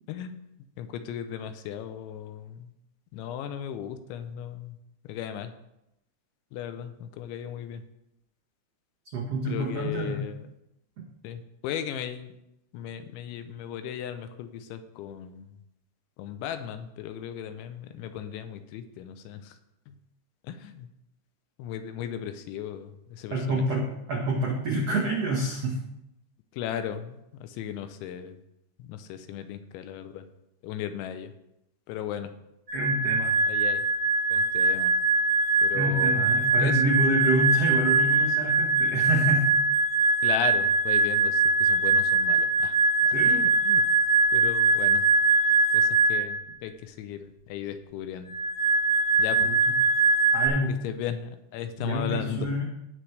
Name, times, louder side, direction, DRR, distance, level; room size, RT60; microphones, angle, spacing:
voice 1, 0.8-2.4 3.1-4.7 5.1-5.5 6.5-6.9 7.2-7.8 9.5-10.3 11.2-11.4 11.6-12.3 12.7-15.4 16.2-19.4 20.5-20.6 21.6-22.9 23.2-23.3 26.6-27.1 27.6-28.3 28.9-30.2 30.6-31.3 31.9-32.3 33.5-33.8 34.3-34.9 35.6-36.2 36.6-36.7 40.2-41.3 41.6-42.7 43.2-43.8 44.3-45.0 46.1-46.4 46.6-46.7 47.0-47.2 47.5-48.3 49.2-49.5 50.8-52.5, left 9 dB, 90° left, 10 dB, 3.1 m, -35 dB
voice 2, 9.1-10.2 11.0-11.1 23.3-25.8 32.7-33.3 35.7-39.5 43.1-43.5 49.4-49.8 50.3-50.7 51.8-52.6, right 1 dB, 80° right, -2 dB, 1.4 m, -27 dB
sound 1, 32.7-46.4 48.3-50.5, right 3 dB, 40° right, 1.3 m, -22 dB
17.5 x 6.2 x 3.3 m, 0.84 s
omnidirectional pair, 5.2 m